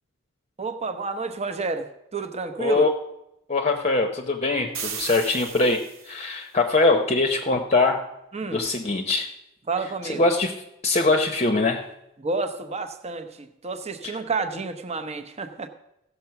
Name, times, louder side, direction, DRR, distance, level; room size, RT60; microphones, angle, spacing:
voice 1, 0.6-2.8 8.3-8.6 9.7-10.2 12.2-15.7, right 4 dB, 30° right, 8 dB, 0.9 m, -30 dB
voice 2, 2.6-3.0 3.5-8.1 8.5-9.4 9.8-11.9 14.0-14.2, left 3 dB, 30° left, 4 dB, 0.8 m, -23 dB
sound 1, 4.7-6.3, right 6 dB, 70° right, 1.5 m, -35 dB
15.5 x 6.9 x 5.8 m, 0.87 s
head